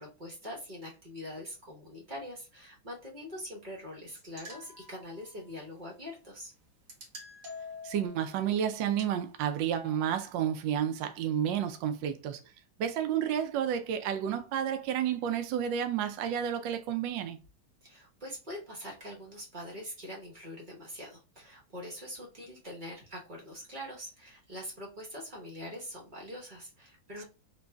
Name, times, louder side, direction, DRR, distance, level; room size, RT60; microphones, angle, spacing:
voice 1, 0.0-6.5 17.8-27.2, left 1 dB, 35° right, 0.8 m, -43 dB
sound 1, 4.2-5.6 6.9-8.4 9.0-9.1, left 2 dB, 55° right, 1.0 m, -47 dB
voice 2, 7.8-12.4 12.8-17.4, right 9 dB, 75° right, 1.2 m, -31 dB
3.8 x 3.1 x 2.2 m
omnidirectional pair, 2.3 m